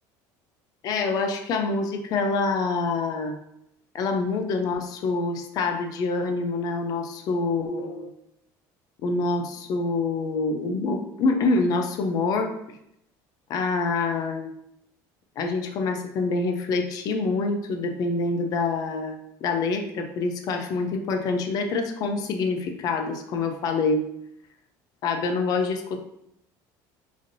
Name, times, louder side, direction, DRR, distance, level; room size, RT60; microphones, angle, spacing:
voice 1, 0.8-3.4 3.9-8.1 9.0-12.5 13.5-14.5 15.4-24.0 25.0-26.0, left 3 dB, 45° left, 5 dB, 0.4 m, -26 dB
3.1 x 2.6 x 2.6 m, 0.76 s
cardioid pair, 150°, 9 cm